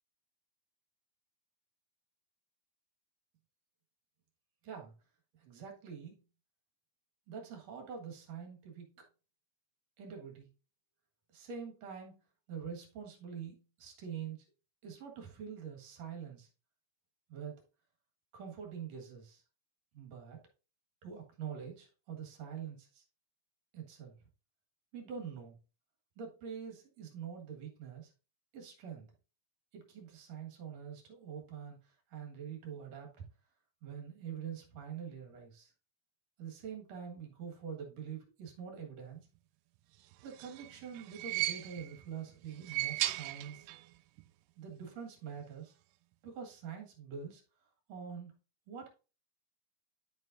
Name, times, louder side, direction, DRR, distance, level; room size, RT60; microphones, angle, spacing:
voice 1, 5.4-6.2 7.3-9.0 10.0-10.5 11.3-12.2 12.5-14.5 14.8-16.5 17.3-17.6 18.3-19.4 19.9-20.4 21.0-23.0 23.7-24.2 24.9-25.6 26.2-28.1 28.5-29.1 29.7-33.3 33.8-35.7 36.4-39.2 40.2-43.7 44.6-45.7 46.2-47.4 47.9-48.3 48.7-48.9, right 7 dB, 55° right, 2 dB, 2.6 m, -45 dB
sound 1, 40.1-42.0 42.5-43.9 44.2-44.3 45.4-45.5, right 16 dB, 80° right, 2.1 m, -37 dB
11.0 x 5.4 x 2.6 m, 0.34 s
omnidirectional pair, 4.0 m